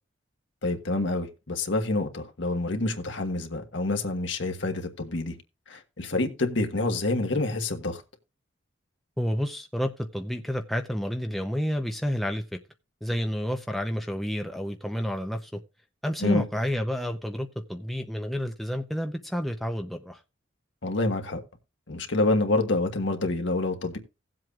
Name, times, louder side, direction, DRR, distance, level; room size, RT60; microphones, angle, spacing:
voice 1, 0.6-5.4 5.7-8.0 16.2-16.4 20.8-21.4 21.9-24.0, left 2 dB, 65° left, 1.4 m, -27 dB
voice 2, 9.2-12.6 13.0-15.6 16.0-20.2, equal, ahead, 0.6 m, -30 dB
17.5 x 7.7 x 2.4 m
head